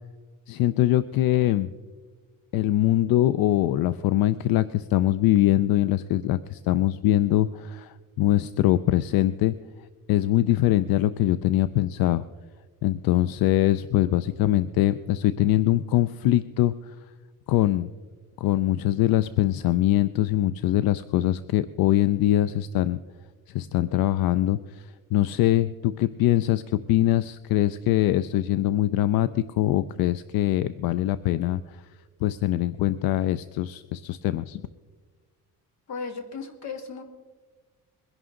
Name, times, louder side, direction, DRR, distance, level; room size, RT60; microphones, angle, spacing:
voice 1, 0.5-1.7 2.5-9.5 10.1-12.2 12.8-16.9 17.5-17.9 18.4-23.0 23.5-31.8 32.2-34.6, left 14 dB, 80° left, 15 dB, 0.5 m, -23 dB
voice 2, 35.9-37.0, left 5 dB, 50° left, 5 dB, 2.0 m, -35 dB
22.0 x 11.0 x 3.8 m, 1.4 s
cardioid pair, 155°, 35 cm